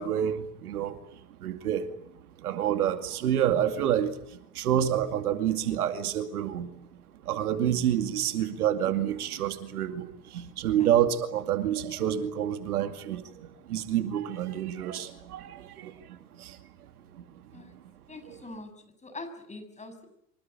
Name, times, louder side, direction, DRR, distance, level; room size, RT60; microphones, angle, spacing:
voice 1, 0.0-1.9 2.4-6.8 7.2-16.7 17.1-17.7 18.3-18.4, right 10 dB, 70° right, 9 dB, 2.5 m, -29 dB
voice 2, 18.1-18.7 19.0-20.0, left 2 dB, 15° left, 9 dB, 6.7 m, -43 dB
26.0 x 23.5 x 8.4 m, 0.76 s
hypercardioid pair, 85°, 46 cm